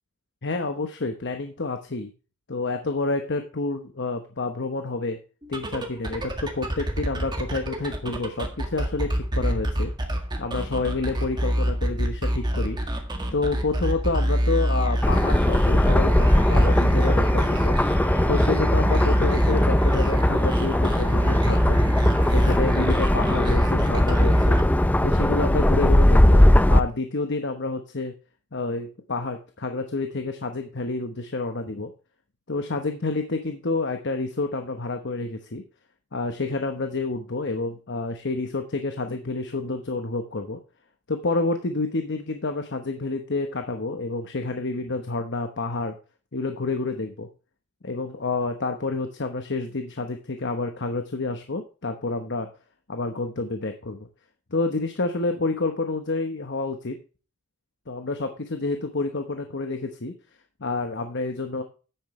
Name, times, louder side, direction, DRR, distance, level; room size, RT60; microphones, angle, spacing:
voice 1, 0.4-2.1 2.5-5.2 5.5-9.9 10.4-12.8 13.3-17.8 18.3-21.8 22.2-24.6 25.0-28.1 28.5-31.9 32.5-35.6 36.1-40.6 41.1-46.0 46.3-47.3 47.8-52.5 52.9-54.1 54.5-57.0 57.9-60.1 60.6-61.6, left 3 dB, 50° left, 6 dB, 1.0 m, -29 dB
sound 1, 5.4-25.2, equal, 20° right, 1.7 m, -25 dB
sound 2, 15.0-26.8, left 1 dB, 5° left, 0.4 m, -20 dB
10.0 x 8.7 x 3.2 m, 0.35 s
head